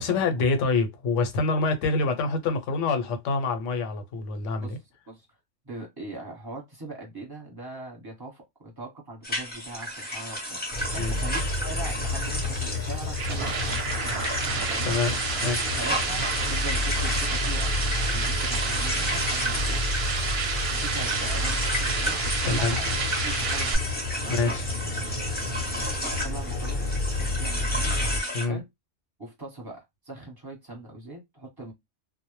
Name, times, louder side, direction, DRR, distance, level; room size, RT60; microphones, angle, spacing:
voice 1, 0.0-4.8 11.0-11.2 14.8-15.1 15.4-15.7 22.4-22.8 24.3-24.6 28.3-28.6, left 3 dB, 80° left, 1.0 m, -26 dB
voice 2, 5.6-10.6 10.9-14.3 14.7-15.0 15.8-19.8 20.7-23.9 24.2-24.4 25.8-28.0 28.5-28.7 29.2-31.7, right 2 dB, 20° right, 0.8 m, -41 dB
sound 1, 9.2-28.5, equal, 10° left, 0.6 m, -33 dB
sound 2, 10.7-28.2, left 2 dB, 45° left, 0.7 m, -31 dB
sound 3, 12.8-23.8, right 5 dB, 65° right, 0.7 m, -30 dB
2.0 x 2.0 x 3.0 m
omnidirectional pair, 1.2 m